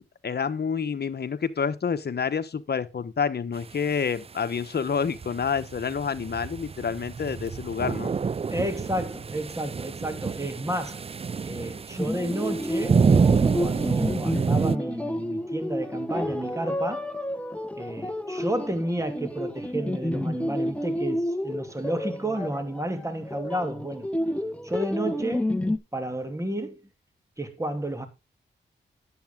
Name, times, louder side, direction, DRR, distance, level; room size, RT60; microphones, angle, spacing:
voice 1, 0.2-8.1, left 6 dB, 55° left, 1.2 m, -28 dB
sound 1, 5.1-14.8, right 5 dB, 30° right, 0.4 m, -27 dB
voice 2, 8.5-11.0 11.4-13.0 13.6-17.1 17.7-24.1 24.6-25.5 25.9-26.8 27.4-28.1, right 1 dB, 15° right, 2.8 m, -31 dB
sound 2, 12.0-25.8, left 1 dB, 5° left, 1.3 m, -30 dB
10.5 x 8.2 x 3.7 m
cardioid pair, 55°, 20 cm